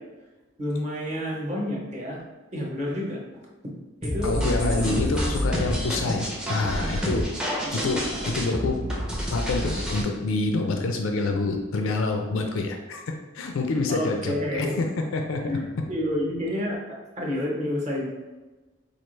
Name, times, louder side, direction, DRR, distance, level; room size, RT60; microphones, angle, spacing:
voice 1, 0.6-2.2 2.5-3.2 4.0-5.1 7.6-8.2 13.9-14.8 15.4-16.8 17.2-18.1, left 1 dB, 35° right, -3 dB, 0.9 m, -29 dB
sound 1, 4.0-10.0, equal, 5° right, 0.5 m, -28 dB
voice 2, 4.2-7.3 7.7-8.8 9.3-15.9, left 3 dB, 75° left, 4 dB, 0.4 m, -27 dB
4.6 x 2.4 x 3.1 m, 1.2 s
head